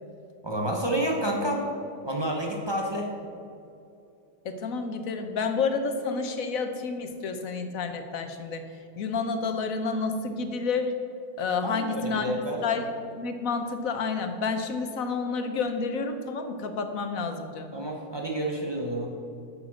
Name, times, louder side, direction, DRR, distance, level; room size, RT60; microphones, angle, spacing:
voice 1, 0.4-1.7 2.0-3.1 11.6-12.6 17.7-19.1, right 1 dB, 20° right, -1 dB, 0.9 m, -29 dB
voice 2, 4.4-8.6 9.0-10.9 11.4-12.2 12.6-12.9 13.2-17.7, left 4 dB, 60° left, 7 dB, 1.1 m, -29 dB
8.8 x 6.7 x 6.2 m, 2.7 s
omnidirectional pair, 1.9 m